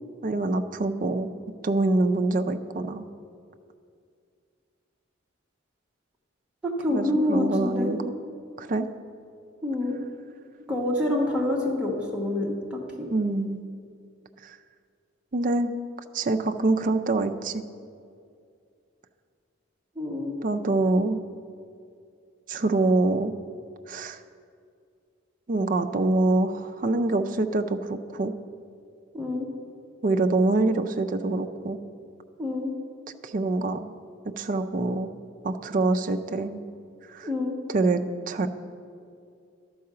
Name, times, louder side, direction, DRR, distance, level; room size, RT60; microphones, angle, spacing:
voice 1, 0.2-1.3 1.6-3.0 6.9-8.1 8.6-8.9 13.1-13.6 14.4-14.6 15.3-15.7 16.1-17.6 20.4-21.2 22.5-23.3 23.9-24.2 25.5-28.3 30.0-31.8 33.2-33.9 34.4-35.1 35.4-36.6 37.1-37.3 37.7-38.0 38.3-38.5, right 2 dB, 40° right, 7 dB, 0.4 m, -25 dB
voice 2, 6.6-7.9 9.6-10.0 10.7-13.1 19.9-20.4 29.1-29.5 32.4-32.7 37.2-37.6, left 1 dB, 5° right, -3 dB, 1.1 m, -27 dB
11.5 x 4.7 x 6.7 m, 2.4 s
head